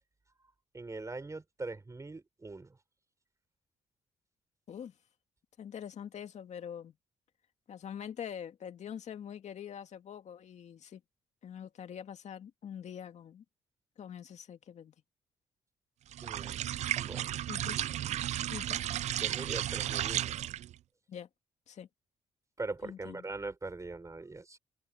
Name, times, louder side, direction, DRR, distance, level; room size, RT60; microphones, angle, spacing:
voice 1, 0.7-2.8 16.2-16.7 16.9-17.5 19.2-20.4 22.6-24.6, right 3 dB, 25° right, 5.4 m, -42 dB
voice 2, 5.6-6.9 7.7-11.0 11.4-13.4 14.0-14.9 17.5-17.8 18.5-18.8 21.1-21.3 21.7-21.9 22.8-23.2, left 8 dB, 60° left, 2.2 m, -44 dB
sound 1, 16.1-20.7, right 12 dB, 60° right, 0.4 m, -34 dB
open air
supercardioid pair, 70°, 13 cm